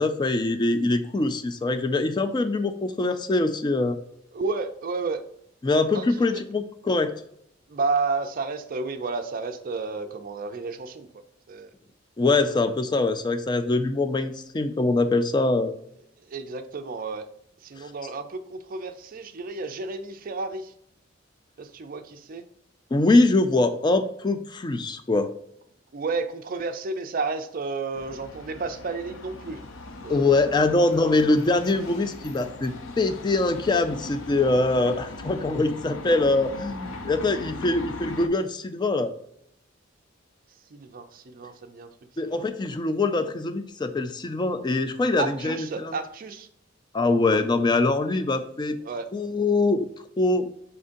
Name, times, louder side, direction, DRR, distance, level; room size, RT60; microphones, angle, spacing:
voice 1, 0.0-4.0 5.6-7.1 12.2-15.7 17.8-17.9 22.9-25.3 30.1-39.1 42.2-46.0 46.9-48.8 49.1-49.9 50.2-50.5, left 2 dB, 20° left, 10 dB, 0.3 m, -23 dB
voice 2, 4.3-5.2 5.9-6.1 6.3-6.4 7.7-11.1 11.5-11.7 16.3-17.3 17.6-20.7 21.6-22.4 25.9-29.6 30.0-30.5 40.7-41.9 42.2-42.5 45.2-46.5 48.8-49.1, right 4 dB, 45° right, 8 dB, 0.4 m, -31 dB
sound 1, 27.9-38.3, left 3 dB, 80° left, 0.6 m, -39 dB
4.4 x 3.7 x 2.6 m, 0.71 s
head